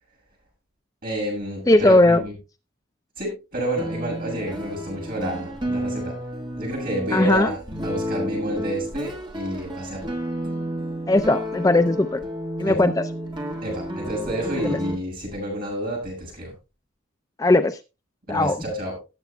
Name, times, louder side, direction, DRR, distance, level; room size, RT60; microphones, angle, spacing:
voice 1, 1.0-2.3 3.2-6.2 6.6-10.2 12.7-12.8 13.6-16.5 18.3-19.0, right 1 dB, 45° right, -1 dB, 7.0 m, -29 dB
voice 2, 1.7-2.2 7.1-7.5 11.1-12.2 12.6-13.0 14.6-14.8 17.4-17.8 18.3-18.6, left 2 dB, 15° left, 10 dB, 0.4 m, -18 dB
sound 1, 3.8-15.0, equal, 20° right, 1.5 m, -31 dB
18.5 x 8.3 x 2.2 m, 0.28 s
head